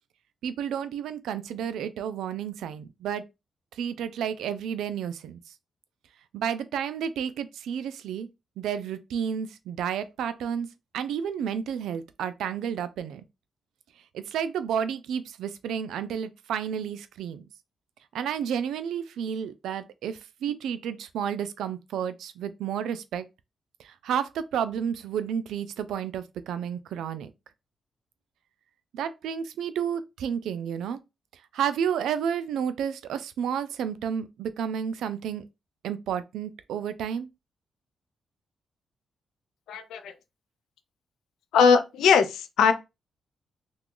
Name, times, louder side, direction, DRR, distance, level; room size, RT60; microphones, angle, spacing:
voice 1, 0.4-3.2 3.8-5.4 6.3-8.3 8.6-13.2 14.1-17.4 18.1-23.2 24.0-27.3 28.9-31.0 31.5-35.4 35.8-37.3, right 8 dB, 85° right, 0.3 m, -31 dB
voice 2, 39.7-40.1 41.5-42.7, left 6 dB, 85° left, 0.5 m, -20 dB
2.8 x 2.2 x 3.7 m
supercardioid pair, 55°, 0 cm